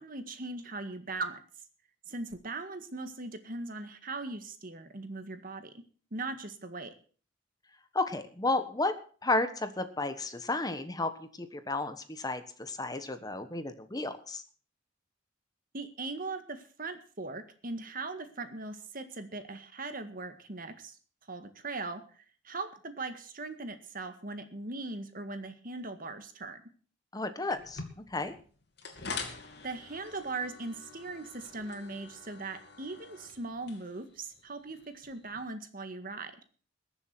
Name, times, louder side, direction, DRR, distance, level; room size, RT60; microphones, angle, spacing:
voice 1, 0.0-1.4 2.1-5.8 6.1-6.9 15.7-21.0 21.3-26.6 29.6-36.3, right 3 dB, 45° right, 8 dB, 1.8 m, -39 dB
voice 2, 7.9-8.9 9.2-14.4 27.1-28.3, left 2 dB, 20° left, 10 dB, 1.2 m, -32 dB
sound 1, 27.5-35.4, left 4 dB, 60° left, 2.7 m, -46 dB
21.0 x 7.3 x 6.1 m, 0.42 s
head